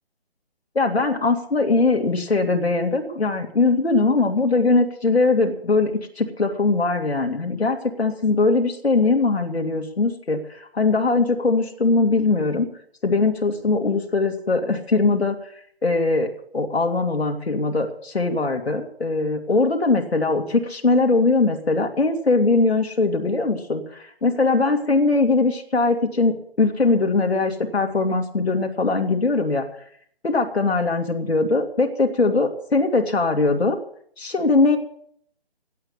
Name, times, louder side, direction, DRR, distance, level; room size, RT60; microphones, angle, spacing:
voice 1, 0.7-12.7 13.0-15.4 15.8-29.7 30.2-33.8 34.2-34.8, left 3 dB, 90° left, 2 dB, 2.5 m, -21 dB
16.5 x 9.9 x 7.1 m, 0.63 s
figure-of-eight pair, 160°, 31 cm